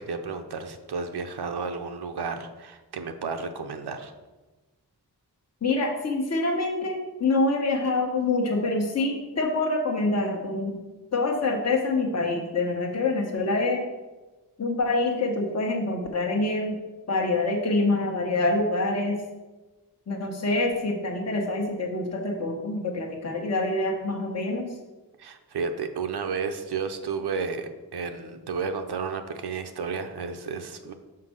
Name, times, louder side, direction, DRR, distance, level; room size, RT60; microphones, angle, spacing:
voice 1, 0.0-4.1 25.2-30.9, right 5 dB, 75° right, 6 dB, 0.7 m, -32 dB
voice 2, 5.6-10.8 11.1-13.8 14.6-16.8 17.1-19.2 20.1-24.7, left 2 dB, 40° left, 1 dB, 1.0 m, -26 dB
5.8 x 4.5 x 6.3 m, 1.2 s
wide cardioid pair, 130°, 39 cm